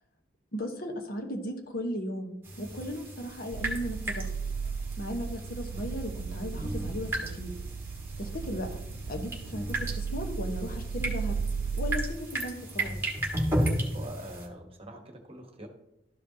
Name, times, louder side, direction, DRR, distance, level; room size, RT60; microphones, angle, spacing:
voice 1, 0.5-4.3 5.0-7.1 7.4-7.5 8.2-8.8 9.1-9.7 10.0-11.3 11.7-13.0, equal, 55° left, 4 dB, 1.2 m, -36 dB
sound 1, 2.4-14.5, right 1 dB, 15° right, 1.6 m, -35 dB
sound 2, 3.5-12.1, right 5 dB, 65° right, 0.4 m, -35 dB
voice 2, 13.9-15.7, right 1 dB, 35° right, 4 dB, 1.2 m, -44 dB
12.5 x 5.1 x 2.8 m, 0.88 s
head